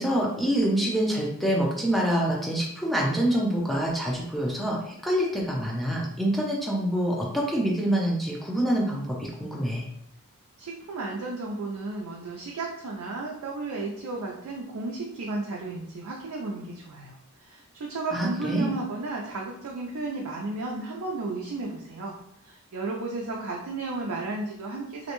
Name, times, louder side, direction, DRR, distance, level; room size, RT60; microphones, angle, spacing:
voice 1, 0.0-9.9 18.1-18.7, right 1 dB, ahead, -3 dB, 0.4 m, -26 dB
voice 2, 10.6-22.1 22.4-25.1, right 3 dB, 80° right, -2 dB, 0.4 m, -33 dB
2.5 x 2.1 x 2.9 m, 0.73 s
head